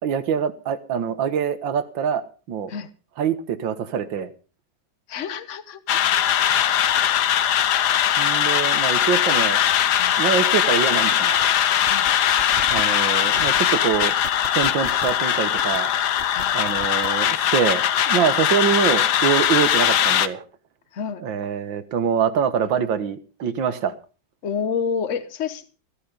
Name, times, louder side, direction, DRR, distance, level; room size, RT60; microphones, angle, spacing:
voice 1, 0.0-2.7 3.2-4.3 8.2-9.6 10.2-11.5 12.7-14.1 14.5-15.9 16.5-20.4 21.2-23.9, right 7 dB, 85° right, 13 dB, 2.0 m, -24 dB
voice 2, 5.1-6.0 10.0-10.1 11.8-12.1 16.3-16.5 20.9-21.2 24.4-25.7, left 6 dB, 45° left, 13 dB, 1.4 m, -29 dB
sound 1, 5.9-20.3, left 10 dB, 65° left, 1.4 m, -20 dB
sound 2, 10.9-11.0 11.2-11.4 11.8-12.1 12.4-12.8 13.3-13.6 13.9-15.2 15.6-15.8 16.2-17.3, right 7 dB, 50° right, 0.9 m, -37 dB
16.0 x 11.5 x 5.2 m, 0.36 s
omnidirectional pair, 2.0 m